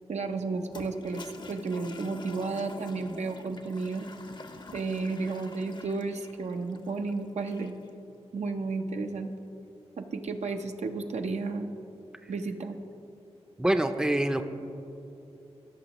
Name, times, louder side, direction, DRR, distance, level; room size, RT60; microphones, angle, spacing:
voice 1, 0.1-4.1 4.7-7.7 8.3-9.3 10.0-11.7 12.3-12.8, right 3 dB, 80° right, 5 dB, 0.6 m, -32 dB
Toilet flush, 0.6-7.9, left 3 dB, 40° left, 0.6 m, -47 dB
voice 2, 13.6-14.4, right 1 dB, 5° right, 8 dB, 0.5 m, -26 dB
16.0 x 6.3 x 3.0 m, 2.9 s
wide cardioid pair, 75°, 11 cm